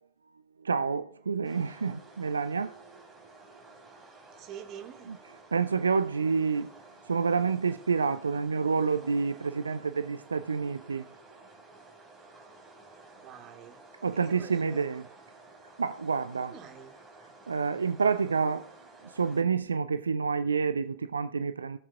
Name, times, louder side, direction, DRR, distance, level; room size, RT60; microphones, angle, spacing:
voice 1, 0.6-2.9 5.1-6.7 7.1-11.1 14.0-15.1 15.8-16.6 17.5-18.7 19.0-21.8, right 5 dB, 75° right, 0.3 m, -28 dB
sound 1, 1.4-19.4, right 3 dB, 15° right, 3.4 m, -53 dB
voice 2, 4.3-5.1 13.2-13.8 14.1-15.0 16.4-17.0, right 8 dB, 35° right, 1.6 m, -47 dB
16.5 x 7.3 x 2.3 m
figure-of-eight pair, 90°, 0 cm